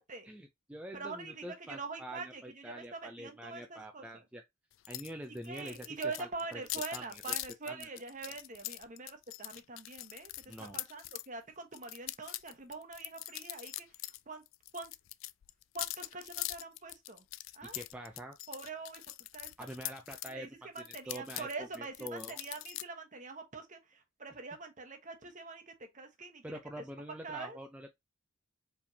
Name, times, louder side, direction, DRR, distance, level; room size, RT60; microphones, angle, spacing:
voice 1, 0.2-4.4 4.9-5.9 6.2-6.6 6.9-7.3 7.7-7.9 10.5-10.8 17.6-18.4 19.6-20.5 21.1-22.4 26.4-27.9, right 1 dB, 5° right, 0.5 m, -45 dB
voice 2, 0.9-4.2 5.4-13.9 14.3-14.4 14.7-14.9 15.7-17.2 17.5-17.8 18.5-19.0 19.3-19.5 20.3-26.4 26.8-26.9 27.2-27.6, right 4 dB, 35° right, 1.1 m, -44 dB
sound 1, 4.9-5.1 5.4-11.3 11.7-14.2 14.5-20.3 20.8-22.8, left 17 dB, 65° left, 0.3 m, -42 dB
4.8 x 3.4 x 2.7 m
head